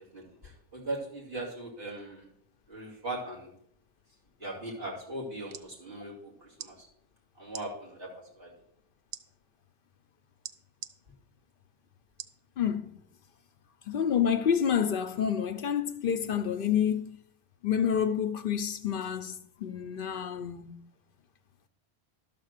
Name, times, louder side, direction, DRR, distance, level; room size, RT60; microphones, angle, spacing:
voice 1, 0.1-2.3 2.7-3.5 4.4-6.9 7.3-8.5, right 2 dB, 70° right, 2.9 m, -39 dB
sound 1, 5.3-5.7 6.5-6.7 7.5-7.7 9.1-9.2 10.4-10.9 12.2-12.4 13.0-13.1, right 10 dB, 90° right, 0.9 m, -42 dB
voice 2, 12.6-12.9 13.9-17.2 17.6-20.7, left 8 dB, 65° left, 0.7 m, -28 dB
12.0 x 4.2 x 6.5 m
omnidirectional pair, 1.1 m